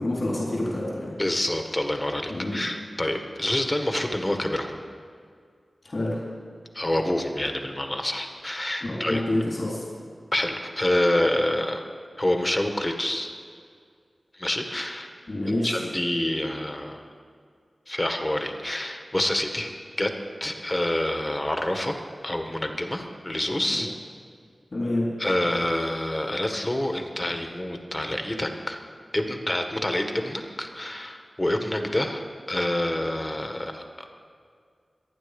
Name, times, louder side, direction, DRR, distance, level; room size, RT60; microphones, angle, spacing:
voice 1, 0.0-1.2 2.3-2.6 5.8-6.2 8.8-9.9 15.3-15.9 23.7-23.9 24.7-25.1, left 1 dB, 60° left, -5 dB, 3.9 m, -27 dB
voice 2, 1.2-4.8 6.7-9.2 10.3-11.8 12.2-13.3 14.3-15.1 15.6-17.0 17.9-20.1 20.4-23.9 25.2-28.8 29.1-34.1, left 1 dB, 25° left, 4 dB, 1.6 m, -27 dB
23.5 x 9.3 x 5.3 m, 2.1 s
wide cardioid pair, 70°, 0 cm